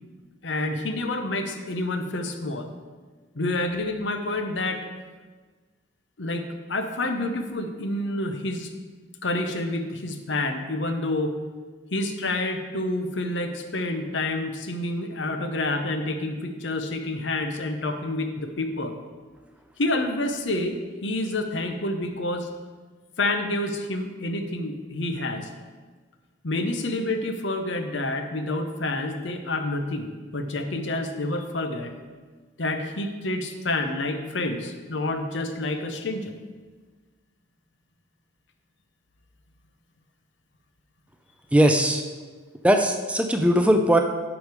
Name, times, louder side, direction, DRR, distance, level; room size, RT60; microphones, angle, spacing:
voice 1, 0.4-2.7 3.3-4.9 6.2-8.7 9.2-11.3 11.9-19.0 19.8-22.5 23.2-25.5 26.4-31.9 32.6-36.3, left 2 dB, 70° left, 7 dB, 0.9 m, -28 dB
voice 2, 41.5-42.0 42.6-44.0, right 1 dB, 5° right, 5 dB, 0.4 m, -19 dB
11.5 x 5.0 x 4.8 m, 1.4 s
head